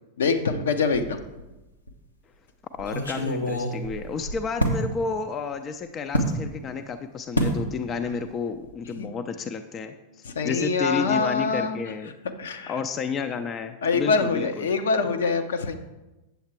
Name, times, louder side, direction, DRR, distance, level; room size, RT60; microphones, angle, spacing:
voice 1, 0.2-1.3 9.0-9.1 10.2-11.8 12.4-12.8 13.8-15.7, left 4 dB, 65° left, 7 dB, 0.7 m, -24 dB
sound 1, 0.9-1.5 1.9-2.0 2.8-4.8 6.1-6.4 7.4-7.6 8.0-8.3 8.5-8.7, equal, 85° left, 1.1 m, -27 dB
voice 2, 2.8-9.9 10.4-12.1 12.7-14.7, left 5 dB, 25° left, 8 dB, 0.4 m, -31 dB
8.2 x 7.2 x 4.5 m, 1.0 s
figure-of-eight pair, 90°, 0 cm